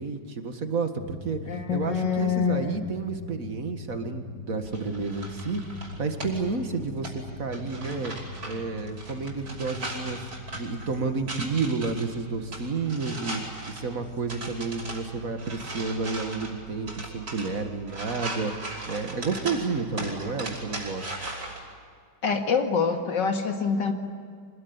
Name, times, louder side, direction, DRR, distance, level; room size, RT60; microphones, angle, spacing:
voice 1, 0.0-8.1 8.4-13.4 13.7-21.1, right 4 dB, 50° right, 7 dB, 2.2 m, -31 dB
sound 1, 0.9-17.1, left 4 dB, 65° left, 8.5 m, -44 dB
voice 2, 1.5-2.7 22.2-23.9, left 6 dB, 85° left, 5 dB, 2.8 m, -26 dB
sound 2, 4.6-21.6, right 2 dB, 75° right, 6.1 m, -39 dB
26.0 x 20.5 x 9.7 m, 2.1 s
omnidirectional pair, 1.9 m